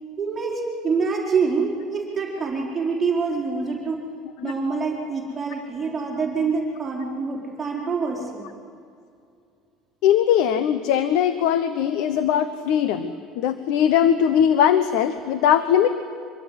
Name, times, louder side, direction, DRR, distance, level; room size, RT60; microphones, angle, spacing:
voice 1, 0.2-4.0 4.4-8.4, right 4 dB, 15° right, -3 dB, 4.4 m, -26 dB
voice 2, 10.0-15.9, left 9 dB, 70° left, 12 dB, 1.1 m, -20 dB
25.0 x 21.5 x 9.6 m, 2.4 s
cardioid pair, 155°, 0 cm